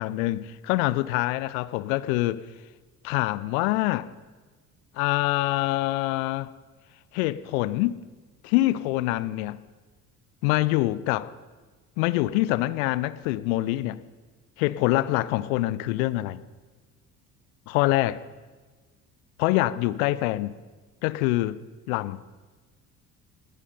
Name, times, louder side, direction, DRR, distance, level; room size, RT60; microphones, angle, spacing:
voice 1, 0.0-2.4 3.0-4.1 5.0-6.5 7.1-8.0 8.4-9.6 10.4-11.3 12.0-14.0 14.6-16.4 17.7-18.2 19.4-20.5 21.0-21.6 21.9-22.2, left 17 dB, 60° left, 0.7 m, -25 dB
19.5 x 10.5 x 5.6 m
figure-of-eight pair, 55°, 48 cm